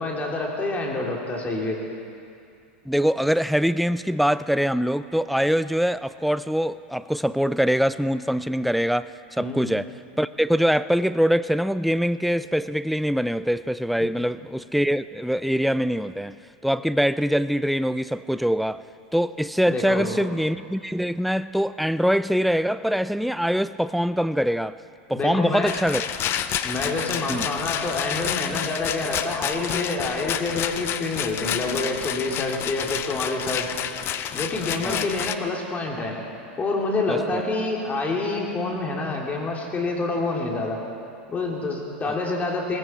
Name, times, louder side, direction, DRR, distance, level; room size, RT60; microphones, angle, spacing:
voice 1, 0.0-1.8 9.4-9.6 19.7-20.2 25.1-25.7 26.6-33.7 34.3-36.2 36.6-40.8 41.3-42.8, left 3 dB, 25° left, -1 dB, 3.0 m, -27 dB
voice 2, 2.9-9.1 9.4-9.9 10.2-16.4 16.6-18.8 19.1-24.8 25.1-26.1 27.3-27.5 34.8-35.0 37.1-37.4, equal, ahead, 14 dB, 0.3 m, -23 dB
Rattle, 25.7-35.4, left 10 dB, 40° left, 0.7 m, -29 dB
19.5 x 15.0 x 4.4 m, 2.5 s
hypercardioid pair, 100°, 6 cm